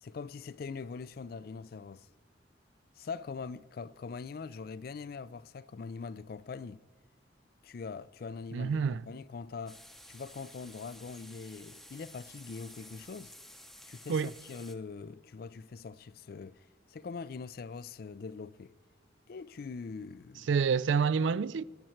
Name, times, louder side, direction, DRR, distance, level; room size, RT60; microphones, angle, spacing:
voice 1, 0.0-2.1 3.0-6.8 7.6-9.8 10.1-13.3 13.9-16.6 16.9-18.7 19.3-20.5, left 5 dB, 50° left, 0.4 m, -42 dB
voice 2, 8.5-9.0 14.1-14.3 20.5-21.6, right 6 dB, 80° right, 0.4 m, -28 dB
sound 1, 9.7-14.7, equal, ahead, 0.7 m, -53 dB
23.0 x 9.2 x 4.4 m
head